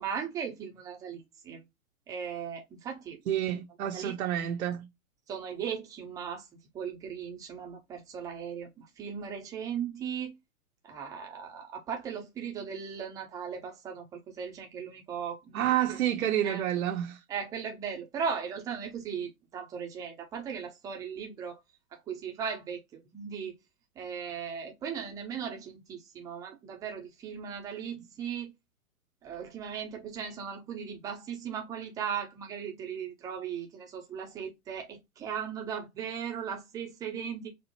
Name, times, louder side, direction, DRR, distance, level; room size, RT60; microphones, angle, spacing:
voice 1, 0.0-1.6 2.1-3.2 3.9-4.5 5.3-6.4 6.7-10.3 10.9-16.0 16.4-16.6 17.3-21.6 22.1-23.5 24.0-28.5 29.2-37.5, right 7 dB, 10° right, 0.4 m, -37 dB
voice 2, 3.3-4.9 15.5-17.2, right 11 dB, 80° right, 0.7 m, -29 dB
4.4 x 2.0 x 2.8 m
hypercardioid pair, 120°, 42 cm